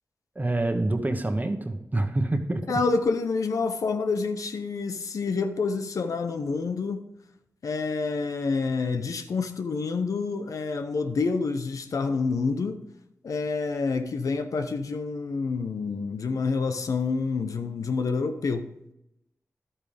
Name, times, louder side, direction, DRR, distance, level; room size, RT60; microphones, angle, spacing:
voice 1, 0.3-2.6, right 2 dB, 30° right, 1.2 m, -26 dB
voice 2, 2.7-7.1 7.6-12.8 13.2-18.7, left 4 dB, 80° left, 0.7 m, -28 dB
11.0 x 8.8 x 3.4 m
cardioid pair, 45°, 6 cm